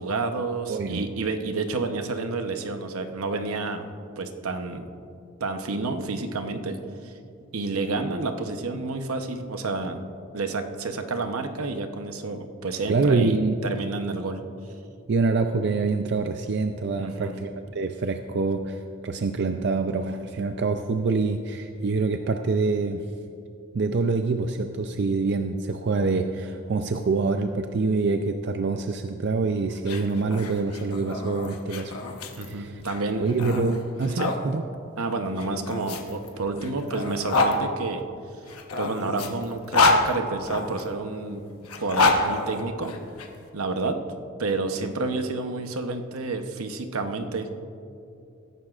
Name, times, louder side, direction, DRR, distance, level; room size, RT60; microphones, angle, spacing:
voice 1, 0.0-3.9 4.2-4.9 5.4-6.8 7.0-7.1 7.5-10.0 10.3-13.3 13.6-14.4 17.0-17.3 32.4-33.3 34.2-34.4 35.0-38.0 38.8-41.4 41.8-43.0 43.5-44.0 44.4-47.6, right 3 dB, 75° right, 7 dB, 0.9 m, -29 dB
voice 2, 0.7-1.1 12.9-13.6 15.1-23.1 23.7-31.9 32.5-32.8 33.2-34.6, right 3 dB, 50° right, 6 dB, 0.4 m, -25 dB
sound 1, 29.7-34.4 35.4-37.6 38.5-40.8 41.6-43.3, left 3 dB, 85° left, 1.2 m, -26 dB
21.5 x 11.0 x 2.5 m, 2.6 s
head